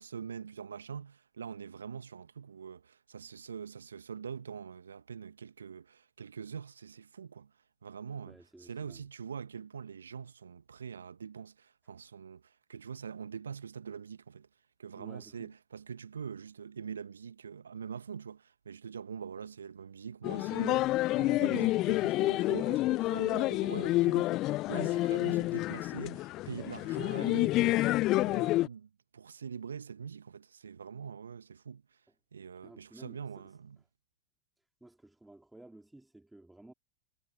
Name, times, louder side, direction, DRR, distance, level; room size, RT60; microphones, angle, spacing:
voice 1, 0.0-7.5 7.8-14.5 14.8-32.0 32.3-33.8, right 6 dB, 80° right, 1.3 m, -44 dB
voice 2, 8.2-9.0 15.0-15.5 32.1-32.2 32.6-33.6 34.6-36.7, right 2 dB, 5° right, 3.2 m, -55 dB
sound 1, 20.2-28.7, left 17 dB, 45° left, 0.4 m, -29 dB
figure-of-eight pair, 85°, 0 cm